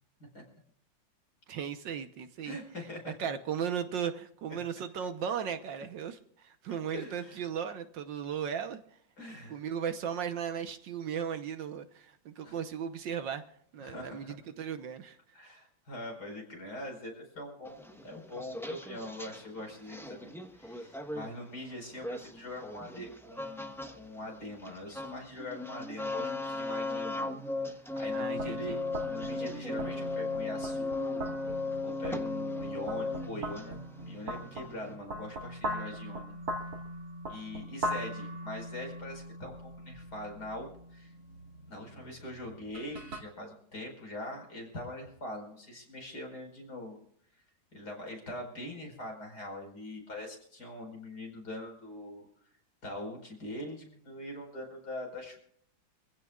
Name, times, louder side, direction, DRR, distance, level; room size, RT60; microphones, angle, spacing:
voice 1, 1.5-2.6 3.0-8.8 9.5-13.4 13.7-15.2 28.1-28.8, right 8 dB, 70° right, 9 dB, 1.6 m, -36 dB
voice 2, 2.4-3.3 4.5-4.6 6.9-7.4 9.2-9.6 12.4-12.6 13.8-14.3 15.3-27.3 27.7-31.2 31.8-33.8 34.1-36.3 37.3-41.1 41.7-47.0 47.7-52.3 52.8-55.4, left 1 dB, 50° left, 2 dB, 5.4 m, -43 dB
sound 1, 17.6-19.4 19.9-21.3 22.0-23.9 24.2-35.0, left 3 dB, ahead, 0.7 m, -37 dB
sound 2, 28.3-43.2, right 1 dB, 50° right, 2.7 m, -41 dB
25.5 x 16.0 x 2.4 m, 0.63 s
omnidirectional pair, 2.2 m